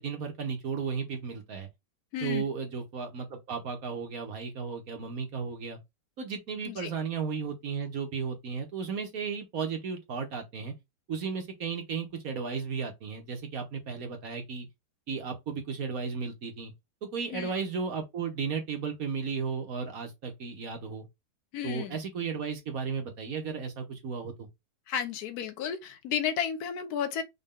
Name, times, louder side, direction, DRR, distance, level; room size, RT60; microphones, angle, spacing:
voice 1, 0.0-1.7 2.2-5.8 6.2-10.7 11.1-14.7 15.1-16.7 17.0-21.1 21.6-24.5, right 5 dB, 60° right, 1.4 m, -34 dB
voice 2, 2.1-2.4 6.7-6.9 17.3-17.5 21.5-22.0 24.9-27.2, left 8 dB, 70° left, 1.3 m, -32 dB
5.4 x 2.3 x 3.7 m
omnidirectional pair, 1.8 m